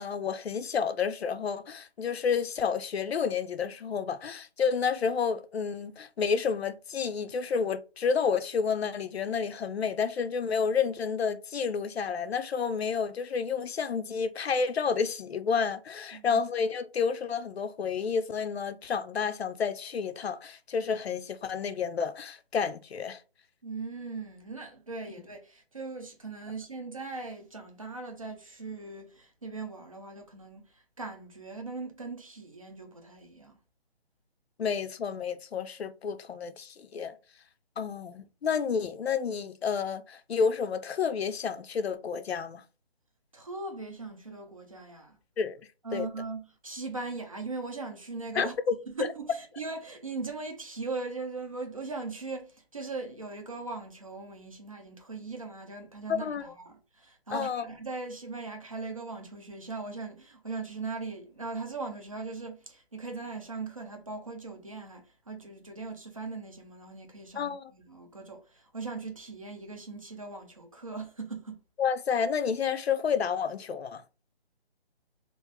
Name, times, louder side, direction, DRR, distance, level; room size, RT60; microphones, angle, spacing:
voice 1, 0.0-23.2 34.6-37.1 37.8-42.6 45.4-45.6 45.9-46.1 48.4-48.7 56.1-56.4 57.3-57.6 67.4-67.7 71.8-74.0, left 6 dB, 80° left, 0.5 m, -30 dB
voice 2, 23.6-33.6 43.3-45.2 45.8-48.6 48.9-71.6, right 3 dB, 35° right, 0.5 m, -39 dB
3.0 x 2.5 x 3.4 m
hypercardioid pair, 175°, 31 cm